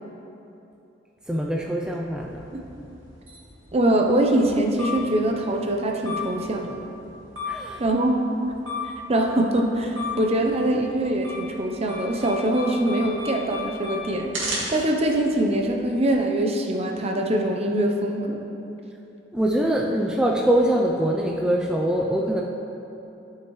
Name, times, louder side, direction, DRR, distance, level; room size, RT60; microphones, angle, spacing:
voice 1, 1.3-2.5 7.5-7.8 19.3-22.4, right 1 dB, 5° right, -2 dB, 0.4 m, -23 dB
sound 1, 2.1-16.1, left 2 dB, 85° right, 2.0 m, -36 dB
voice 2, 3.7-6.8 7.8-8.2 9.1-14.3 14.7-18.4, right 1 dB, 35° right, 2 dB, 0.7 m, -23 dB
12.0 x 6.6 x 3.1 m, 2.9 s
head